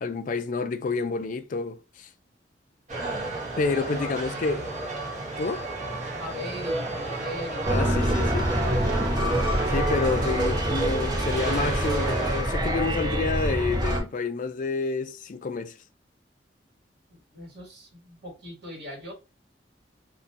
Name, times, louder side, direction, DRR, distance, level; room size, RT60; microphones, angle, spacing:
voice 1, 0.0-2.1 3.6-4.7 5.4-5.6 7.7-8.6 9.7-15.7, left 4 dB, 45° left, 0.4 m, -29 dB
sound 1, 2.9-12.4, right 3 dB, 40° right, 1.1 m, -31 dB
voice 2, 3.7-4.6 6.2-9.1 17.1-19.1, left 1 dB, 60° right, 1.6 m, -40 dB
sound 2, 7.6-14.0, equal, 25° right, 0.7 m, -26 dB
2.7 x 2.5 x 4.1 m
head